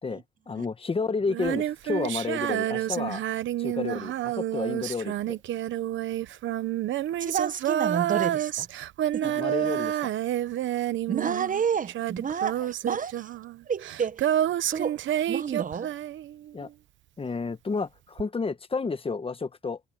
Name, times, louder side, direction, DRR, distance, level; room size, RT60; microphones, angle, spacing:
voice 1, 0.0-3.2 3.6-5.4 9.2-10.1 12.6-12.7 16.5-16.7 17.2-19.8, left 4 dB, 30° left, 1.3 m, -31 dB
Female singing, 1.3-16.6 18.2-18.3, right 12 dB, 70° right, 0.9 m, -29 dB
voice 2, 7.2-8.7 9.1-9.3 11.1-13.3 13.7-14.2 14.7-15.0 15.3-15.9, right 7 dB, 40° right, 1.0 m, -30 dB
cardioid pair, 90°, 20 cm